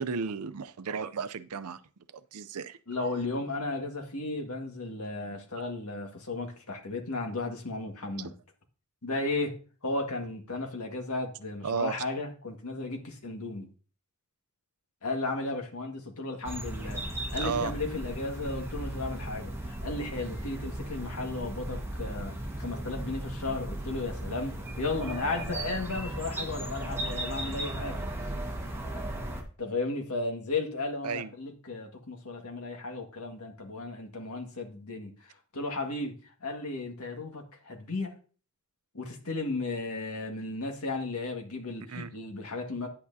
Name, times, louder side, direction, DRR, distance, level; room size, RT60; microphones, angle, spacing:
voice 1, 0.0-1.8 2.1-2.8 8.2-8.3 11.6-11.9 17.4-17.7 31.0-31.3 41.9-42.1, right 5 dB, 90° right, 13 dB, 0.6 m, -33 dB
voice 2, 2.9-8.4 9.0-9.6 9.8-13.7 15.0-17.0 17.3-28.0 29.6-36.2 36.4-38.1 38.9-42.9, left 2 dB, 80° left, 2 dB, 1.8 m, -34 dB
sound 1, 16.4-29.4, right 1 dB, 10° right, 1.4 m, -36 dB
9.8 x 8.6 x 2.7 m, 0.38 s
head